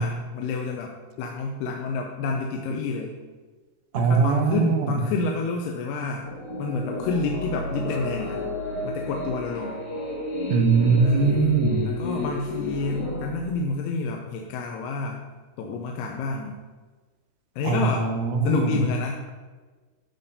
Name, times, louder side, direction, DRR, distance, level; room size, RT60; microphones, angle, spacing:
voice 1, 0.0-3.2 3.9-6.3 6.6-8.5 8.8-9.9 11.0-15.2 15.6-16.6 17.6-18.1 18.4-19.2, left 4 dB, 80° left, 1 dB, 2.7 m, -29 dB
voice 2, 3.9-4.9 10.5-11.9 17.6-18.8, right 5 dB, 75° right, 5 dB, 2.4 m, -21 dB
sound 1, 6.2-13.3, left 1 dB, 50° left, 1.9 m, -31 dB
11.5 x 4.3 x 6.7 m, 1.3 s
omnidirectional pair, 4.7 m